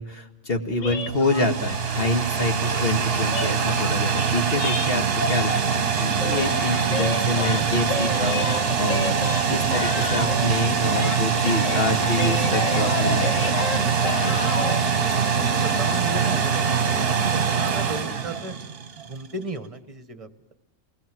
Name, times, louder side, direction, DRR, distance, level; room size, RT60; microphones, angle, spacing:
voice 1, 0.0-9.2 9.5-13.5, left 1 dB, 40° left, 4 dB, 2.2 m, -27 dB
sound 1, 0.8-5.9 6.2-10.7 10.9-14.8, left 3 dB, 65° left, 1.5 m, -31 dB
sound 2, 0.9-19.1, right 6 dB, 45° right, 1.3 m, -23 dB
voice 2, 14.4-18.5 19.0-20.5, right 3 dB, 25° right, 10 dB, 1.4 m, -36 dB
28.0 x 20.5 x 7.7 m, 0.97 s
omnidirectional pair, 1.5 m